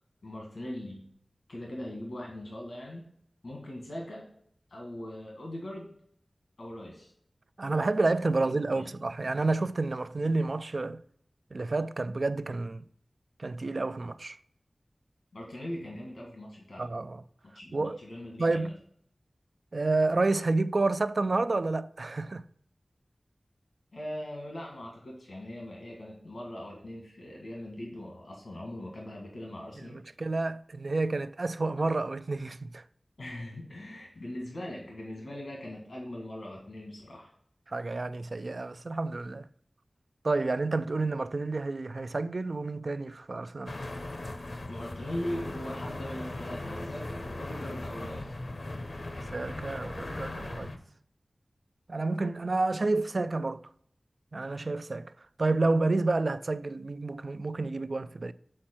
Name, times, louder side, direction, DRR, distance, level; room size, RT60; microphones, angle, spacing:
voice 1, 0.2-1.1 1.5-3.0 3.4-4.3 4.7-5.9 6.6-7.1 8.4-8.9 15.3-16.8 17.4-18.7 23.9-30.0 33.2-37.3 44.7-48.3, left 1 dB, 85° left, 1.6 m, -40 dB
voice 2, 7.6-11.0 11.5-12.8 13.4-14.4 16.8-17.2 17.7-18.0 18.4-18.7 19.7-22.4 29.9-32.8 37.7-39.5 40.2-43.7 49.3-50.7 51.9-53.6 54.3-55.1 55.4-58.3, right 3 dB, 60° right, 0.3 m, -29 dB
sound 1, 43.7-50.8, left 2 dB, 60° left, 0.8 m, -38 dB
7.6 x 4.3 x 4.3 m
wide cardioid pair, 65°, 0 cm